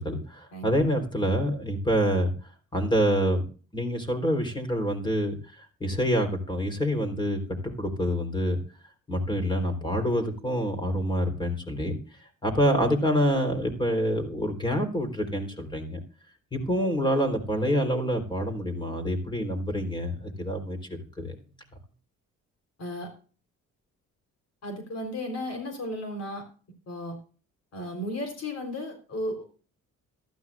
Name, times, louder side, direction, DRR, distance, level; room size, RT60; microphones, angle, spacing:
voice 1, 0.0-2.3 2.7-3.5 3.7-8.6 9.1-12.0 12.4-16.0 16.5-20.8 21.2-21.3, equal, 15° left, 6 dB, 3.9 m, -26 dB
voice 2, 24.6-26.4 26.9-27.2 27.7-29.4, left 1 dB, 55° left, 5 dB, 3.9 m, -34 dB
15.0 x 13.5 x 2.5 m, 0.39 s
cardioid pair, 90°, 30 cm